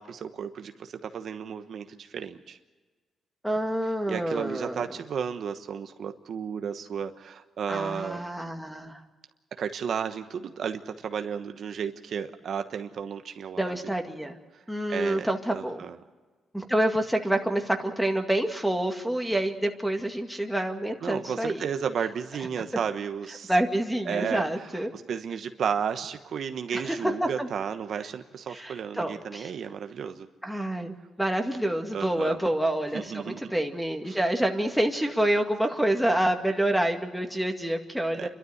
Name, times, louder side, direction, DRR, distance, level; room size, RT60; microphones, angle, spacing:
voice 1, 0.0-2.6 4.1-8.2 9.6-13.8 14.9-16.0 21.0-23.5 24.1-30.3 31.9-32.4 32.9-33.4 34.1-34.2 38.1-38.3, right 7 dB, 65° right, 7 dB, 1.1 m, -33 dB
voice 2, 3.4-4.9 7.7-9.0 13.6-14.4 14.7-15.8 16.5-21.7 23.5-24.9 26.7-27.5 28.5-29.5 30.4-38.3, right 1 dB, ahead, 3 dB, 2.1 m, -27 dB
29.0 x 12.5 x 8.0 m, 1.3 s
cardioid pair, 110°, 0 cm